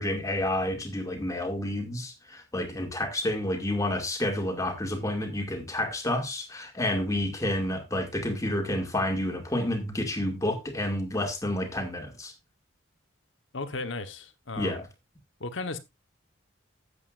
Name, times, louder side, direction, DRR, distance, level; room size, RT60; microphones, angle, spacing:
voice 1, 0.0-12.3 14.6-14.9, left 1 dB, 15° left, 2.2 m, -29 dB
voice 2, 13.5-14.8 15.4-15.8, left 3 dB, 65° left, 1.1 m, -35 dB
12.5 x 8.3 x 2.5 m
head